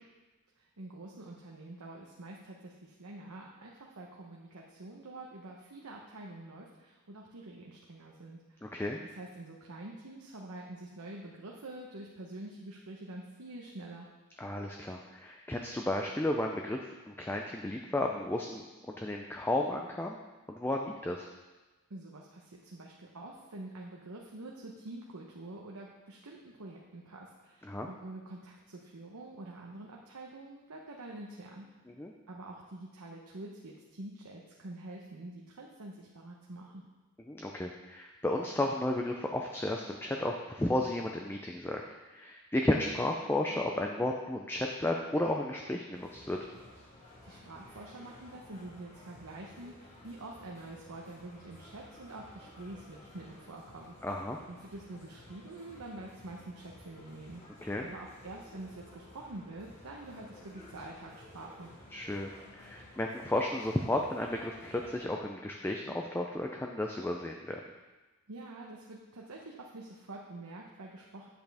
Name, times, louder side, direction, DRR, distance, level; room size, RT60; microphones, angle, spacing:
voice 1, 0.6-8.7 9.1-14.1 21.9-31.7 32.3-36.8 47.2-53.9 54.5-61.7 68.3-71.3, right 2 dB, 85° right, -1 dB, 0.9 m, -46 dB
voice 2, 8.6-9.0 14.4-18.7 19.0-20.2 20.5-21.3 27.7-27.9 31.9-32.1 37.3-46.4 54.0-54.4 57.6-57.8 61.9-67.6, left 1 dB, 10° left, 1 dB, 0.4 m, -33 dB
sound 1, 45.9-65.0, left 1 dB, 30° left, 1.8 m, -54 dB
9.2 x 8.0 x 3.5 m, 1.2 s
head